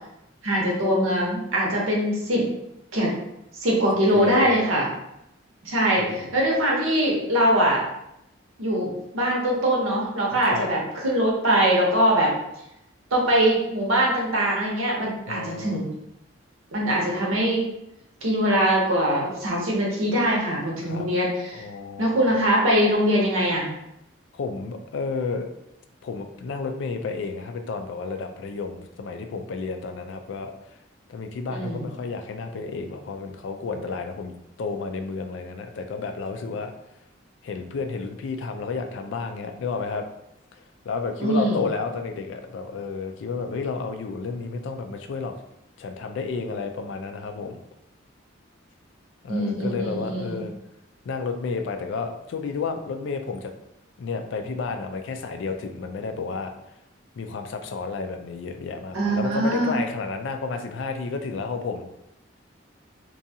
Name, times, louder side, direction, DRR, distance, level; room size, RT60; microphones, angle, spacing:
voice 1, 0.4-2.4 2.9-3.2 3.5-4.9 5.6-7.8 8.6-12.3 13.1-15.9 16.7-17.6 18.2-21.7 22.0-23.7 31.5-31.9 41.2-41.6 49.3-50.4 58.9-59.8, right 1 dB, 90° right, -2 dB, 0.8 m, -22 dB
voice 2, 4.1-4.6 6.0-6.2 10.5-10.7 15.3-15.8 20.8-21.1 21.5-22.3 24.3-25.5 26.0-30.5 31.1-36.7 37.4-40.0 40.8-45.4 45.8-47.6 49.2-50.5 51.1-53.5 54.0-56.5 57.2-62.0, left 4 dB, 70° left, 5 dB, 0.3 m, -31 dB
2.6 x 2.3 x 2.7 m, 0.83 s
head